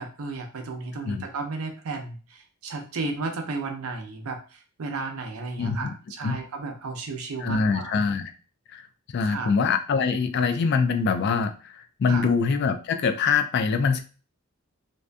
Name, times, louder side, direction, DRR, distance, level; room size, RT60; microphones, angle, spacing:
voice 1, 0.0-7.9 9.2-9.5 12.1-12.3, right 3 dB, 90° right, 4 dB, 0.6 m, -34 dB
voice 2, 5.6-5.9 6.2-6.4 7.4-8.3 8.7-8.9 9.1-14.0, left 5 dB, 55° left, 8 dB, 0.3 m, -24 dB
2.6 x 2.5 x 2.2 m, 0.36 s
head